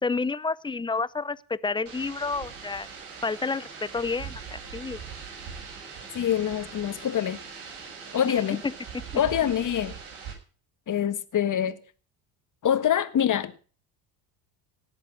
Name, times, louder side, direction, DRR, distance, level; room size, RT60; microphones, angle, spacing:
voice 1, 0.0-2.9 3.2-5.0 8.3-9.2, left 4 dB, 10° left, 0.6 m, -30 dB
sound 1, 1.9-10.3, right 6 dB, 70° right, 6.8 m, -41 dB
voice 2, 6.1-7.4 8.1-8.6 9.1-10.0 10.9-11.8 12.6-13.6, left 9 dB, 40° left, 1.6 m, -25 dB
18.0 x 8.1 x 6.0 m
supercardioid pair, 90°, 47 cm